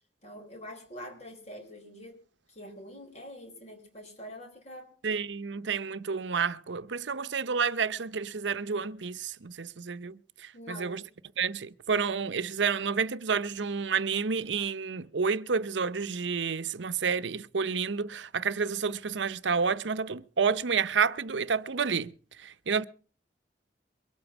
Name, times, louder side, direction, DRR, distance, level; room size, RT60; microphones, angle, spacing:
voice 1, 0.2-2.2 2.5-4.9 10.5-11.1, equal, 40° left, 4.8 m, -45 dB
voice 2, 5.0-11.0 11.4-22.1 22.4-22.8, right 5 dB, 85° right, 0.7 m, -30 dB
23.5 x 8.7 x 6.1 m
head